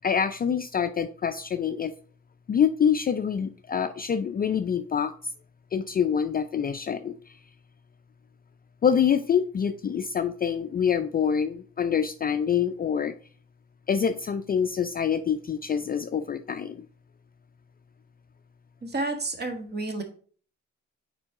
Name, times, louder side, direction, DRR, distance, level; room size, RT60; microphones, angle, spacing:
voice 1, 0.0-1.9 2.5-5.1 5.7-7.3 8.8-13.1 13.9-16.8, left 7 dB, 30° left, 9 dB, 0.4 m, -26 dB
voice 2, 18.8-20.0, right 2 dB, 35° right, 5 dB, 1.4 m, -30 dB
6.0 x 4.5 x 3.6 m, 0.43 s
cardioid pair, 90°, 30 cm